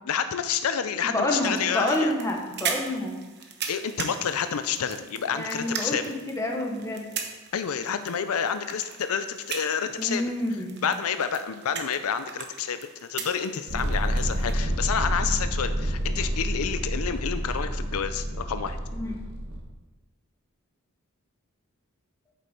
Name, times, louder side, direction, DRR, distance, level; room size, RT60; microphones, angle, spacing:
voice 1, 0.0-2.1 3.7-6.0 7.5-10.2 10.8-12.8 13.1-18.8, left 7 dB, 80° left, 10 dB, 0.5 m, -29 dB
voice 2, 1.0-3.1 5.3-6.0 6.3-7.0 10.0-10.9 18.9-19.1, left 1 dB, 15° left, 1 dB, 1.3 m, -28 dB
sound 1, 1.4-14.5, right 6 dB, 50° right, 1.0 m, -39 dB
sound 2, 13.7-19.6, equal, 70° right, 1.6 m, -29 dB
8.3 x 7.2 x 4.4 m, 1.2 s
head